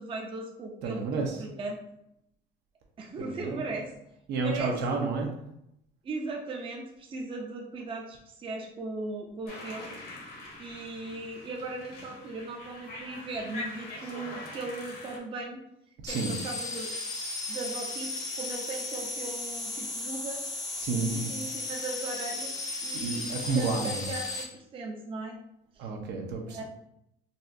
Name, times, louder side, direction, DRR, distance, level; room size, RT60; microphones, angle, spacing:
voice 1, 0.0-1.8 3.0-3.9 4.4-5.0 6.0-9.9 10.6-15.6 16.1-16.9 17.5-20.4 21.1-25.4 25.7-25.9 26.5-26.6, right 2 dB, 30° right, 0 dB, 0.5 m, -38 dB
voice 2, 0.8-1.5 3.2-3.8 4.3-5.3 16.0-16.4 20.8-21.3 22.9-24.1 25.8-26.6, right 4 dB, 70° right, 1 dB, 0.7 m, -31 dB
sound 1, 9.5-15.2, left 2 dB, 55° left, 1.0 m, -43 dB
sound 2, 16.1-24.4, left 2 dB, 20° left, 0.5 m, -35 dB
4.1 x 2.3 x 2.6 m, 0.78 s
cardioid pair, 140°, 19 cm